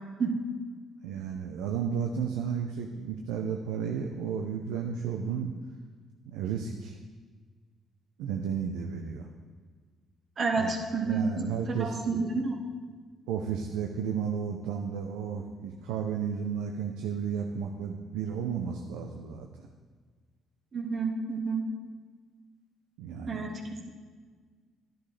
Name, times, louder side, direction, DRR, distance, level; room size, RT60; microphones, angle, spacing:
voice 1, 1.0-5.5 6.3-6.9 8.2-9.3 10.6-10.7 11.0-12.0 13.3-19.5 23.0-23.5, right 7 dB, 85° right, 2 dB, 0.6 m, -33 dB
voice 2, 10.4-12.6 20.7-21.6 23.3-23.5, right 4 dB, 50° right, 0 dB, 1.8 m, -30 dB
11.5 x 10.5 x 3.3 m, 1.5 s
supercardioid pair, 60°, 0 cm